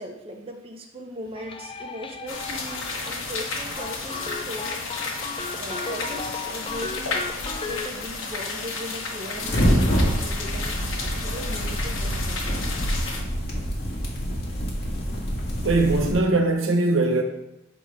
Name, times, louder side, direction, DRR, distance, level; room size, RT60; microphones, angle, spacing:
voice 1, 0.0-4.9 5.6-12.8, equal, 30° right, 0.7 m, -38 dB
sound 1, 1.3-3.4 3.8-7.9, left 4 dB, 25° left, 0.4 m, -36 dB
sound 2, 2.3-13.2, left 3 dB, 75° left, 1.2 m, -32 dB
sound 3, 9.4-16.1, equal, 55° left, 1.7 m, -26 dB
voice 2, 15.6-17.2, right 2 dB, 75° right, 0.9 m, -21 dB
7.2 x 3.7 x 4.8 m
head